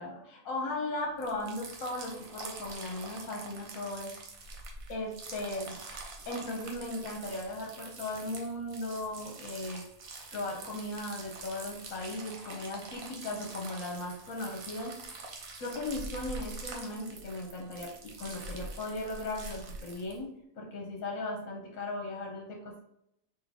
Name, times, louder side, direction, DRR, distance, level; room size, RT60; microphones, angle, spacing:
voice 1, 0.0-4.1 4.9-5.8 6.2-9.8 10.3-20.3 20.6-22.8, left 2 dB, 65° left, 0 dB, 1.2 m, -37 dB
sound 1, 1.2-20.2, right 3 dB, 70° right, 1.2 m, -45 dB
3.7 x 2.8 x 3.5 m, 0.74 s
omnidirectional pair, 1.5 m